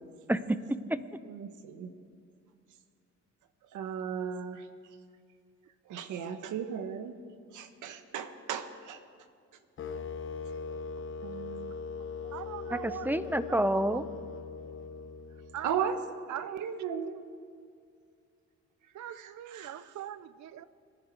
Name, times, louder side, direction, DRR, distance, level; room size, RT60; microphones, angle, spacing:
voice 1, 0.3-1.0 12.7-14.0, right 1 dB, 5° right, 14 dB, 0.6 m, -29 dB
voice 2, 1.3-1.9 3.7-4.6 5.9-7.1 7.5-9.0 11.2-11.7 15.6-16.0 16.3-17.3 19.2-19.7, right 8 dB, 80° right, 9 dB, 1.3 m, -36 dB
sound 1, 9.8-15.9, left 5 dB, 40° left, 1.0 m, -40 dB
voice 3, 12.0-13.1 13.4-14.0 15.5-15.7 16.3-16.6 18.9-20.7, right 11 dB, 65° right, 15 dB, 0.7 m, -42 dB
26.5 x 10.5 x 4.5 m, 2.3 s
cardioid pair, 90°, 30 cm